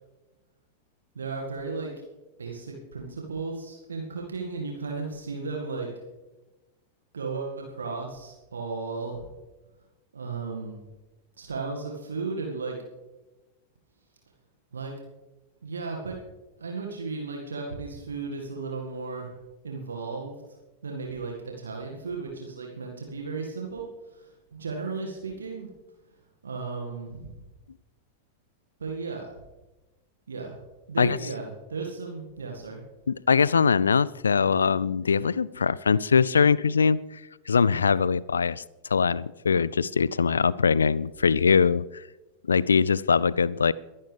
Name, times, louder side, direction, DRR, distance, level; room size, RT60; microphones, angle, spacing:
voice 1, 1.2-1.9 2.4-6.0 7.1-9.3 10.1-10.8 11.4-12.8 14.7-14.9 15.6-16.2 16.6-19.3 19.6-20.3 20.8-25.7 26.4-27.4 28.8-29.3 30.3-30.6 30.9-32.8, right 4 dB, 70° right, 1 dB, 1.9 m, -35 dB
voice 2, 33.1-37.0 37.5-38.6 38.9-42.0 42.5-43.7, left 5 dB, 70° left, 22 dB, 0.3 m, -22 dB
23.0 x 11.0 x 3.4 m, 1.1 s
figure-of-eight pair, 90°, 0 cm